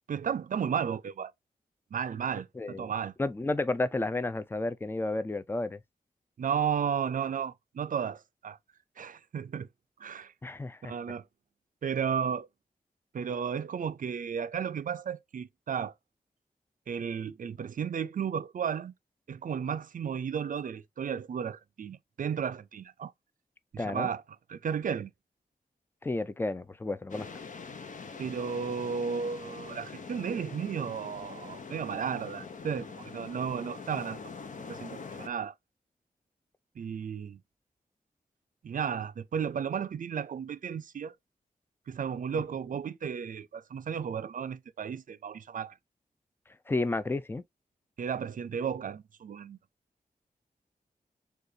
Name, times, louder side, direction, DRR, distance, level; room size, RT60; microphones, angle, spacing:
voice 1, 0.1-1.3 1.9-3.1 6.4-8.6 9.0-9.7 10.0-10.3 10.8-11.2 11.8-12.5 13.1-15.9 16.9-18.9 19.3-23.1 23.7-24.2 24.5-25.1 28.2-34.2 34.7-35.5 36.8-37.4 38.6-41.1 41.9-45.7 48.0-49.6, right 7 dB, 65° right, 0.5 m, -33 dB
voice 2, 2.6-2.9 3.2-5.8 10.4-10.9 23.8-24.1 26.0-27.3 46.7-47.4, left 2 dB, 15° left, 0.4 m, -31 dB
sound 1, 27.1-35.3, left 5 dB, 60° left, 0.8 m, -44 dB
6.5 x 2.4 x 2.7 m
wide cardioid pair, 110°, 15 cm